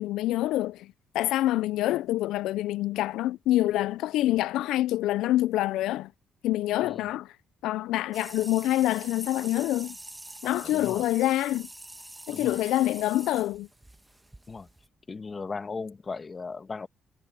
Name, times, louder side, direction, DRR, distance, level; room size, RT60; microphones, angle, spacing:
voice 1, 0.0-6.1 6.4-7.4 7.6-10.0 10.4-11.7 12.3-13.7, left 15 dB, 90° left, 0.3 m, -26 dB
sound 1, 8.1-14.9, right 1 dB, 10° right, 1.2 m, -45 dB
voice 2, 10.4-11.1 12.3-12.6 14.5-14.7 15.1-16.9, left 4 dB, 35° left, 1.9 m, -37 dB
cardioid pair, 90°, 0 cm